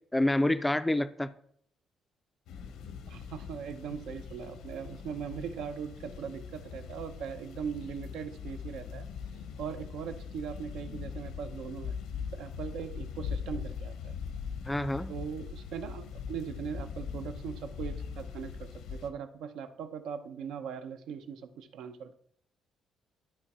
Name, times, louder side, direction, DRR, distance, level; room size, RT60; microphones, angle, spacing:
voice 1, 0.1-1.3 14.6-15.1, left 1 dB, 5° left, 0.3 m, -27 dB
sound 1, 2.5-19.1, left 6 dB, 85° left, 0.9 m, -41 dB
voice 2, 3.1-9.1 9.6-12.0 12.3-14.1 15.1-22.1, right 7 dB, 85° right, 0.8 m, -40 dB
12.0 x 4.5 x 4.3 m
cardioid pair, 170°, 0 cm